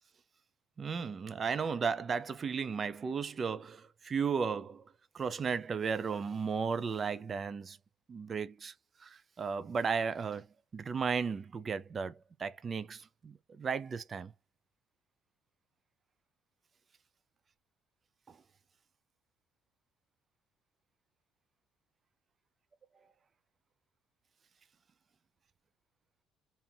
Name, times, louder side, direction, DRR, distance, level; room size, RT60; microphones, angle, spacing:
voice 1, 0.8-4.8 5.1-7.8 8.1-8.7 9.0-10.5 10.7-14.3, right 5 dB, 40° right, 0.6 m, -35 dB
3.7 x 2.8 x 4.5 m
supercardioid pair, 70°, 0 cm